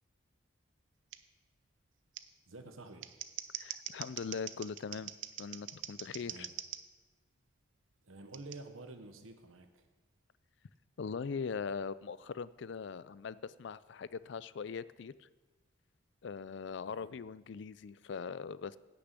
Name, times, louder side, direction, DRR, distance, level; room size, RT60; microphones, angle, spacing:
Scissors, 1.1-1.2 2.1-2.2 2.9-6.8 8.3-8.6, right 11 dB, 65° right, 0.6 m, -43 dB
voice 1, 2.5-3.1 6.3-6.5 8.0-9.8 16.8-17.1, right 2 dB, 85° right, 6 dB, 1.2 m, -50 dB
voice 2, 3.5-5.1 5.4-6.5 11.0-15.3 16.2-18.8, left 5 dB, 60° left, 17 dB, 0.4 m, -41 dB
11.0 x 6.9 x 8.2 m, 1.3 s
head